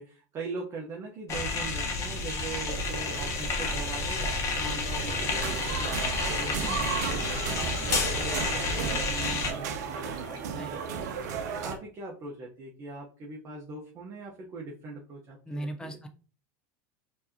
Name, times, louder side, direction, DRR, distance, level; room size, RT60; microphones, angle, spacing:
voice 1, 0.0-11.3 11.6-16.0, right 3 dB, 35° right, -2 dB, 0.9 m, -41 dB
sound 1, 1.3-9.5, left 3 dB, 35° left, 1.1 m, -30 dB
sound 2, 2.7-11.8, right 3 dB, 50° right, 1.7 m, -43 dB
sound 3, 4.9-11.7, right 7 dB, 80° right, 0.7 m, -35 dB
voice 2, 15.5-16.1, right 1 dB, 10° left, 7 dB, 0.6 m, -38 dB
4.6 x 2.9 x 2.8 m, 0.38 s
supercardioid pair, 120°, 9 cm